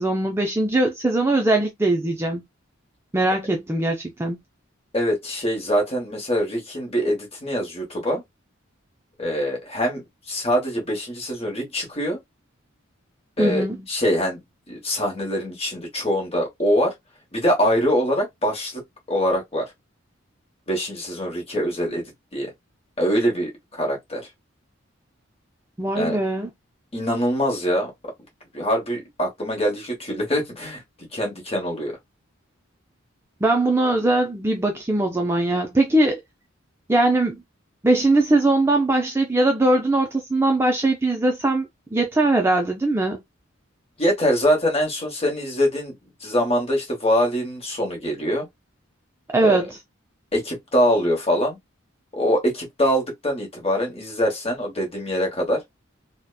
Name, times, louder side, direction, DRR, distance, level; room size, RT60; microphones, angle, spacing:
voice 1, 0.0-2.4 3.1-4.4 13.4-13.8 25.8-26.5 33.4-36.2 36.9-37.4 37.8-43.2 49.3-49.8, right 2 dB, 10° right, 0.3 m, -21 dB
voice 2, 4.9-8.2 9.2-12.2 13.4-14.4 14.7-16.9 17.3-18.8 19.1-19.7 20.7-22.5 23.0-24.3 25.9-26.2 26.9-27.9 28.5-32.0 44.0-45.9 46.2-48.5 49.4-49.6 50.3-51.6 52.1-55.6, equal, 30° left, 1.0 m, -24 dB
2.7 x 2.1 x 2.2 m
head